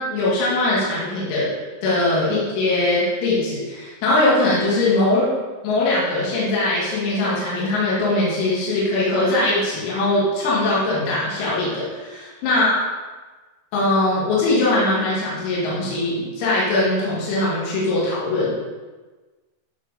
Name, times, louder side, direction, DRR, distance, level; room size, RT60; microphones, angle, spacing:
voice 1, 0.0-1.5 1.8-5.3 5.6-12.7 13.7-18.5, left 2 dB, 90° left, -7 dB, 5.2 m, -21 dB
16.0 x 6.7 x 3.7 m, 1.3 s
omnidirectional pair, 5.9 m